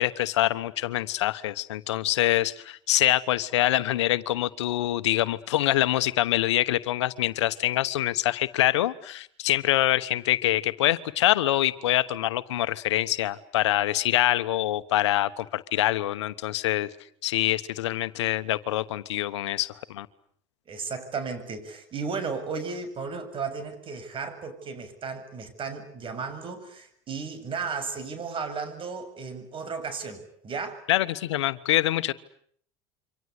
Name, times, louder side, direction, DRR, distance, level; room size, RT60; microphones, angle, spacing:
voice 1, 0.0-16.9 17.2-20.1 30.9-32.1, left 14 dB, 85° left, 14 dB, 1.1 m, -25 dB
voice 2, 20.7-30.8, right 5 dB, 35° right, 10 dB, 7.4 m, -34 dB
28.5 x 25.0 x 8.2 m, 0.64 s
hypercardioid pair, 90°, 14 cm